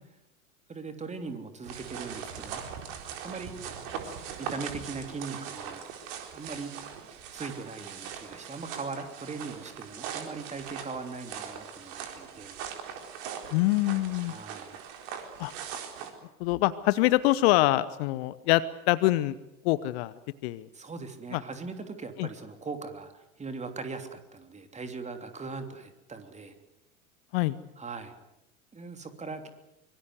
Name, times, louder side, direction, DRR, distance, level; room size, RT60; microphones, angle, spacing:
voice 1, 0.7-2.6 3.2-3.5 3.8-4.0 4.4-6.7 7.0-12.6 14.2-14.7 20.7-26.5 27.8-28.1 28.7-29.5, right 4 dB, 15° right, 7 dB, 3.1 m, -40 dB
sound 1, 1.6-16.1, right 8 dB, 45° right, 4.2 m, -41 dB
voice 2, 13.5-14.3 15.4-15.5 16.4-19.4 19.6-20.1 20.4-20.7 21.3-21.4 22.2-22.3 27.3-27.6, left 17 dB, 45° left, 17 dB, 0.9 m, -25 dB
24.5 x 23.5 x 8.0 m, 0.90 s
figure-of-eight pair, 80°, 43 cm